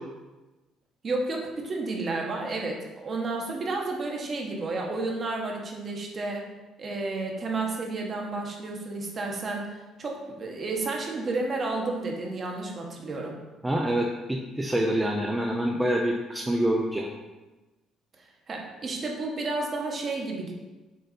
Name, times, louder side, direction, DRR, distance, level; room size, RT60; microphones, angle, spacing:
voice 1, 1.0-6.4 6.8-9.7 10.0-13.4 18.5-20.5, right 3 dB, 35° right, 0 dB, 1.2 m, -31 dB
voice 2, 13.6-17.1, right 1 dB, 10° right, 0 dB, 0.5 m, -26 dB
6.7 x 4.1 x 4.2 m, 1.1 s
cardioid pair, 135°, 0 cm